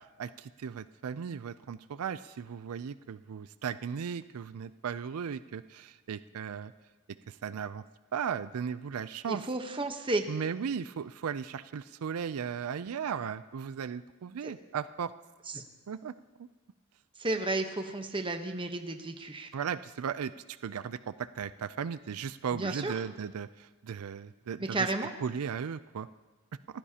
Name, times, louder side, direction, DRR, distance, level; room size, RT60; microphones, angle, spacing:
voice 1, 0.0-6.7 7.3-7.8 8.1-9.4 10.3-15.1 15.9-16.1 16.4-16.5 19.5-24.9 25.2-26.1, right 7 dB, 85° right, 14 dB, 0.4 m, -36 dB
voice 2, 9.3-10.2 14.4-14.5 15.5-15.6 17.2-19.5 22.6-22.9 24.6-25.1, right 2 dB, 25° right, 6 dB, 1.0 m, -32 dB
29.0 x 15.0 x 2.9 m, 1.2 s
head